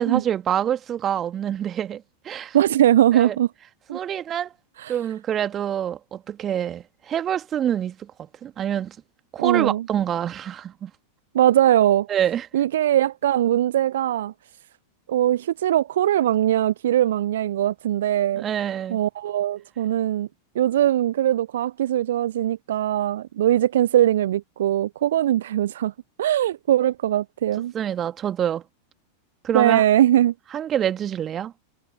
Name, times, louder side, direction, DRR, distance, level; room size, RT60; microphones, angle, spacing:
voice 1, 0.0-2.6 3.1-3.4 3.9-4.5 4.9-8.1 8.4-9.0 9.3-10.9 12.1-12.5 18.4-19.0 27.7-28.6 29.4-29.8 30.5-31.5, right 10 dB, 25° right, 1.8 m, -26 dB
voice 2, 2.5-3.5 3.9-4.0 4.8-5.0 9.4-9.9 11.3-12.1 12.5-14.3 15.1-18.4 18.9-20.3 20.5-25.9 26.2-27.7 29.5-30.3, right 12 dB, 60° right, 0.6 m, -21 dB
figure-of-eight pair, 90°, 0 cm